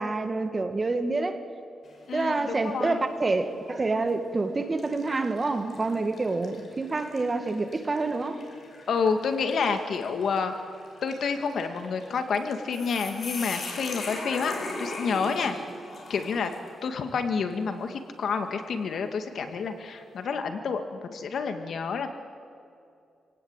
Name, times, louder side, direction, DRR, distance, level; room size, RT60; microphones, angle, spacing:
voice 1, 0.0-1.4 2.1-8.4, right 3 dB, 30° right, 1.9 m, -27 dB
sound 1, 1.9-2.3 2.8-3.0 3.9-4.2 4.8-16.8, left 2 dB, 55° left, 5.8 m, -40 dB
voice 2, 2.1-3.0 8.9-10.5 11.0-15.6 16.1-16.5 16.8-22.1, left 5 dB, 70° left, 2.0 m, -29 dB
26.5 x 17.5 x 9.0 m
cardioid pair, 95°, 0 cm